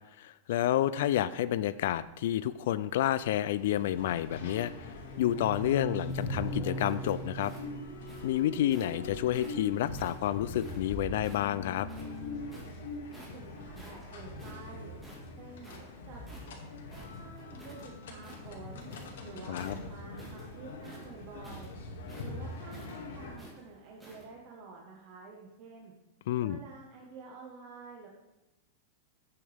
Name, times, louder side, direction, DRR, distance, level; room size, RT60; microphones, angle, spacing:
voice 1, 0.2-4.7 5.2-7.5 8.2-11.9 19.5-19.7 26.3-26.6, left 12 dB, 55° left, 15 dB, 0.3 m, -29 dB
sound 1, 3.6-23.4, left 2 dB, 90° left, 2.2 m, -43 dB
sound 2, 4.2-4.4 4.8-10.2 11.1-12.4, right 1 dB, 20° left, 3.6 m, -41 dB
sound 3, 5.2-9.0 9.3-11.5 11.8-12.8 13.1-13.5 13.8-17.9 18.1-19.2 19.5-24.3, right 1 dB, 5° right, 1.7 m, -52 dB
voice 2, 13.3-14.9 15.4-15.8 16.1-16.2 16.6-18.9 19.2-21.7 22.2-25.9 26.4-28.1, right 4 dB, 30° right, -2 dB, 1.2 m, -49 dB
11.0 x 8.6 x 3.4 m, 1.0 s
supercardioid pair, 180°, 0 cm